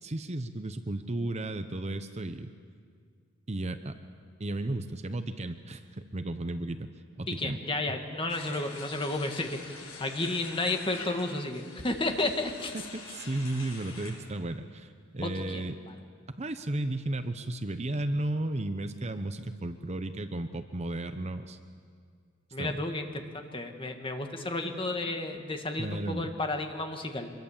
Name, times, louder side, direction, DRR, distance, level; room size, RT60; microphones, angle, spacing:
voice 1, 0.0-2.5 3.5-4.0 4.4-6.9 7.2-7.6 12.9-15.8 16.3-21.6 22.6-22.8 25.8-26.3, right 1 dB, 30° right, 9 dB, 0.8 m, -34 dB
voice 2, 7.3-12.7 15.2-15.9 22.5-27.3, left 2 dB, 25° left, 4 dB, 1.8 m, -32 dB
sound 1, 8.3-14.2, left 4 dB, 85° left, 7.1 m, -45 dB
25.0 x 22.5 x 7.3 m, 2.1 s
head